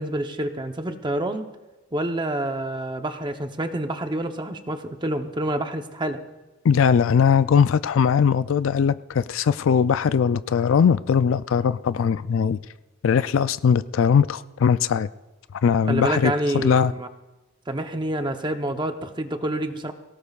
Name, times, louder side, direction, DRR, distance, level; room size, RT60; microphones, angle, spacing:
voice 1, 0.0-1.5 1.9-6.2 15.9-17.1 17.7-19.9, right 1 dB, 20° right, 6 dB, 0.8 m, -27 dB
voice 2, 6.6-12.6 13.0-15.1 15.6-16.3 16.6-16.9, left 6 dB, 65° left, 15 dB, 0.4 m, -20 dB
23.5 x 17.5 x 2.4 m, 1.1 s
head